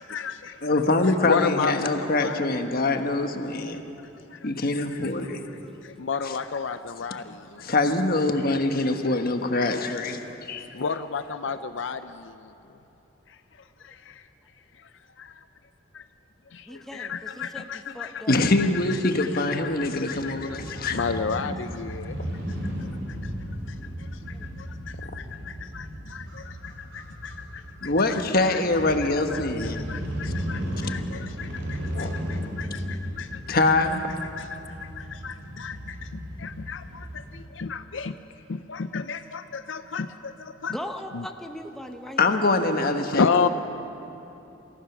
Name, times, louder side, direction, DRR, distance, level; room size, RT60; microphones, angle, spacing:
voice 1, 0.0-0.6 1.1-2.4 4.3-4.4 5.8-7.6 10.3-10.4 10.7-12.3 13.8-14.2 15.2-15.3 15.9-16.0 16.5-18.2 19.2-22.2 25.1-28.2 28.5-28.6 29.3-33.6 34.4-36.0 36.4-38.2 38.5-40.8 41.1-41.2 43.1-43.5, left 5 dB, 70° left, 10 dB, 0.5 m, -32 dB
voice 2, 0.6-3.8 4.4-5.4 6.2-6.4 7.6-10.2 10.5-10.7 18.3-21.0 27.8-29.8 31.9-32.1 33.5-34.1 42.2-43.5, left 2 dB, 50° left, 6 dB, 1.3 m, -24 dB
voice 3, 16.7-18.4 20.6-20.8 24.3-24.5 28.6-29.1 40.7-43.5, equal, ahead, 4 dB, 0.9 m, -40 dB
Crow / Motorcycle, 19.6-37.5, equal, 80° right, 3.8 m, -35 dB
27.0 x 15.5 x 6.1 m, 3.0 s
head